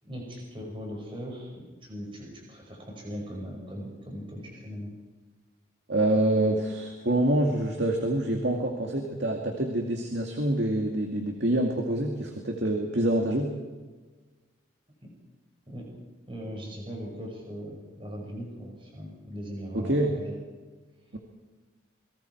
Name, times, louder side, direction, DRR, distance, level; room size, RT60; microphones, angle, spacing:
voice 1, 0.0-1.5 1.8-4.9 15.7-15.9 16.3-20.4, equal, 25° right, -1 dB, 5.5 m, -39 dB
voice 2, 5.9-13.5 19.7-20.1 21.1-21.2, right 1 dB, 60° right, 2 dB, 2.3 m, -26 dB
29.0 x 23.0 x 4.7 m, 1.3 s
head